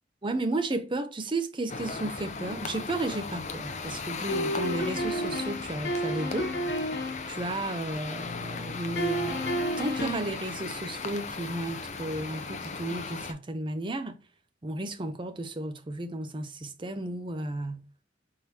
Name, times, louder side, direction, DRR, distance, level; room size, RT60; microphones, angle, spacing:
voice 1, 0.2-6.5 7.3-14.2 14.6-17.9, right 2 dB, 25° right, 0.6 m, -33 dB
sound 1, 1.7-13.3, left 4 dB, 40° left, 0.6 m, -37 dB
sound 2, 4.3-7.3 9.0-10.4, equal, 65° left, 1.2 m, -31 dB
4.7 x 3.8 x 2.8 m
head